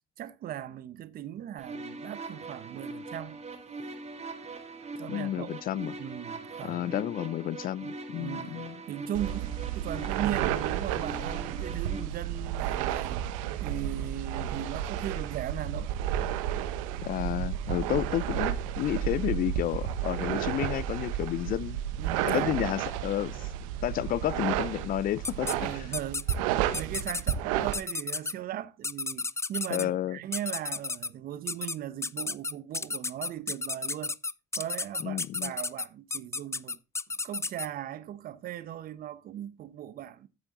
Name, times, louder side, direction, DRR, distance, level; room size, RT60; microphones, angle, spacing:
voice 1, 0.2-3.4 5.0-5.5 6.0-7.0 8.2-13.2 13.6-15.9 17.7-17.9 22.0-22.6 25.5-34.2 34.5-36.8 37.2-40.3, right 11 dB, 60° right, 1.2 m, -38 dB
sound 1, 1.6-12.0, right 3 dB, 40° right, 3.6 m, -41 dB
voice 2, 5.1-5.9 6.6-8.8 17.0-21.8 22.2-23.5 23.8-25.8 29.7-30.2 35.0-35.5, left 12 dB, 60° left, 0.6 m, -31 dB
sound 2, 9.1-27.7, right 11 dB, 90° right, 1.2 m, -32 dB
sound 3, 25.2-25.6 25.9-26.4 26.7-27.3 27.7-28.3 28.8-29.9 30.3-31.1 31.5-31.8 32.0-37.7, left 3 dB, 15° left, 0.6 m, -32 dB
14.0 x 7.0 x 3.9 m
supercardioid pair, 70°, 17 cm